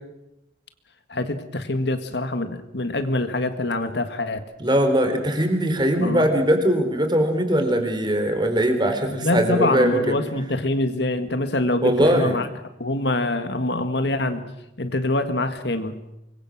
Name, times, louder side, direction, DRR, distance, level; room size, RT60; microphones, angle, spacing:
voice 1, 1.1-4.4 6.0-6.3 9.1-12.5 12.8-14.4 14.8-16.1, left 2 dB, 65° left, 9 dB, 1.9 m, -25 dB
voice 2, 4.6-10.2 11.8-12.4, right 1 dB, 25° right, 6 dB, 3.5 m, -21 dB
25.5 x 23.0 x 6.3 m, 0.89 s
head